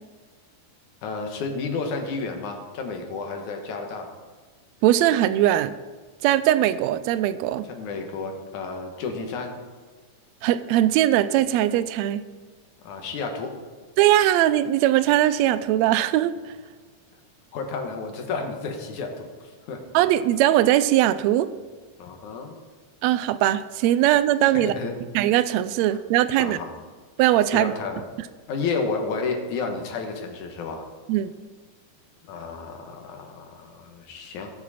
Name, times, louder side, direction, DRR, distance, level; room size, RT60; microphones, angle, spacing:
voice 1, 1.0-4.1 7.7-9.5 12.8-13.5 17.5-19.8 22.0-22.6 24.5-25.0 26.4-26.8 27.5-28.1 28.5-30.9 32.3-34.5, left 4 dB, 85° left, 3 dB, 2.7 m, -31 dB
voice 2, 4.8-5.7 6.2-7.6 10.4-12.2 14.0-16.3 19.9-21.5 23.0-24.7 25.1-26.6 27.2-27.7 31.1-31.3, right 13 dB, 80° right, 14 dB, 1.7 m, -20 dB
17.5 x 7.4 x 4.2 m, 1.4 s
omnidirectional pair, 3.4 m